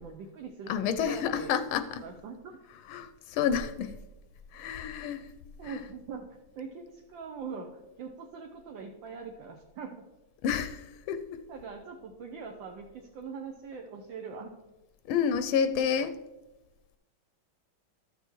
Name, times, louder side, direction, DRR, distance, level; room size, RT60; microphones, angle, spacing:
voice 1, 0.0-1.5 2.0-2.6 5.6-10.0 11.5-14.5, right 5 dB, 70° right, 2 dB, 1.3 m, -42 dB
voice 2, 0.7-2.0 2.9-3.9 4.5-5.2 5.6-5.8 10.4-11.2 15.1-16.2, left 7 dB, 85° left, 11 dB, 1.4 m, -29 dB
13.0 x 6.7 x 3.1 m, 1.0 s
omnidirectional pair, 2.3 m